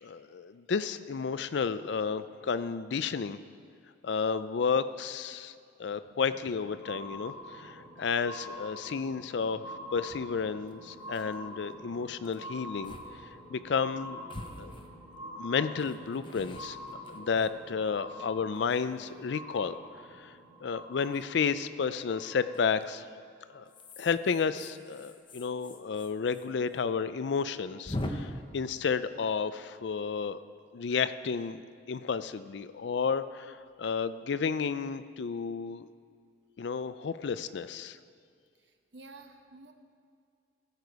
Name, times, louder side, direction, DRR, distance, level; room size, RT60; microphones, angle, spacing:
voice 1, 0.0-3.4 4.0-5.5 5.8-12.9 13.5-14.2 14.6-14.7 15.4-16.8 17.1-19.7 20.2-23.1 23.5-23.6 24.0-30.4 30.7-35.9 36.6-38.0, left 5 dB, 65° left, 13 dB, 0.4 m, -32 dB
sound 1, 6.0-22.8 23.5-23.6, equal, 10° right, 2.9 m, -46 dB
sound 2, 10.1-10.2 10.7-10.8 11.0-11.4 12.2-12.4 12.8-13.1 13.4-13.5 14.3-15.2 15.8-18.0 18.5-19.3 21.0-21.3 22.5-22.9 23.6-26.5 26.7-26.8 27.1-27.2 27.8-28.1, left 1 dB, 25° left, 0.7 m, -43 dB
voice 2, 38.6-39.7, right 3 dB, 65° right, 6 dB, 0.9 m, -51 dB
16.0 x 6.8 x 4.7 m, 2.2 s
head